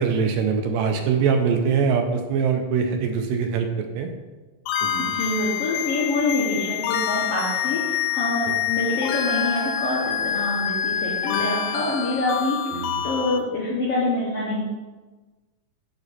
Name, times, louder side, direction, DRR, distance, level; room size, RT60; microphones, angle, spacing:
voice 1, 0.0-3.7 4.0-4.1 4.8-5.1 12.7-13.0, right 6 dB, 80° right, 5 dB, 2.2 m, -23 dB
sound 1, 4.7-13.4, left 9 dB, 80° left, 2.2 m, -26 dB
voice 2, 5.1-12.6 13.0-14.6, left 2 dB, 60° left, -6 dB, 1.6 m, -26 dB
11.0 x 4.2 x 4.1 m, 1.2 s
omnidirectional pair, 4.2 m